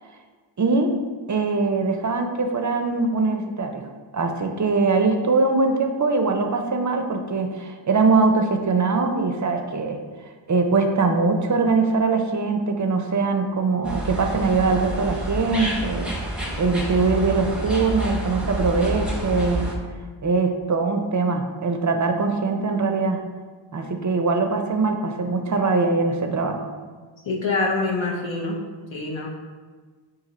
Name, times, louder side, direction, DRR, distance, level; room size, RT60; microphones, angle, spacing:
voice 1, 0.6-0.9 1.3-10.0 10.5-16.1 16.6-19.7 20.2-23.2 23.7-26.7, right 4 dB, 40° right, 4 dB, 0.5 m, -22 dB
sound 1, 13.8-19.7, right 1 dB, ahead, 0.7 m, -29 dB
voice 2, 27.3-28.6 28.9-29.3, left 3 dB, 65° left, -2 dB, 0.7 m, -25 dB
4.2 x 2.7 x 3.9 m, 1.5 s
wide cardioid pair, 55°, 49 cm